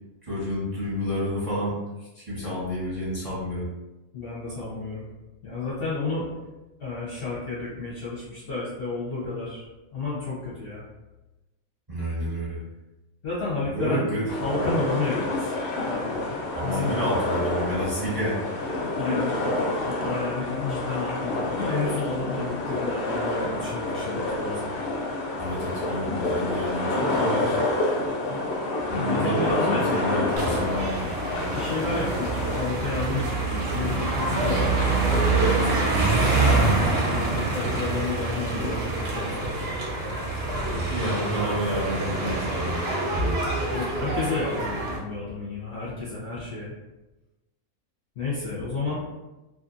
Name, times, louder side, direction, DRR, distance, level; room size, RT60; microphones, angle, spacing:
voice 1, 0.2-1.8 2.1-3.7 11.9-12.6 13.6-14.6 16.5-18.4 25.4-27.6 28.9-31.1 40.9-42.8, equal, 20° right, -9 dB, 0.8 m, -29 dB
voice 2, 4.1-5.1 5.4-6.3 6.8-9.7 9.9-10.8 13.2-14.0 14.4-15.5 15.9-16.2 16.6-17.0 19.0-19.3 19.8-24.7 28.9-30.6 31.5-35.9 36.3-39.5 43.1-43.3 43.7-46.7 48.2-49.0, left 3 dB, 50° left, -8 dB, 0.8 m, -31 dB
sound 1, 14.3-32.6, left 2 dB, 75° left, 0.5 m, -28 dB
sound 2, 30.4-45.0, right 3 dB, 55° right, 0.8 m, -26 dB
2.6 x 2.5 x 2.5 m, 1.0 s
omnidirectional pair, 1.5 m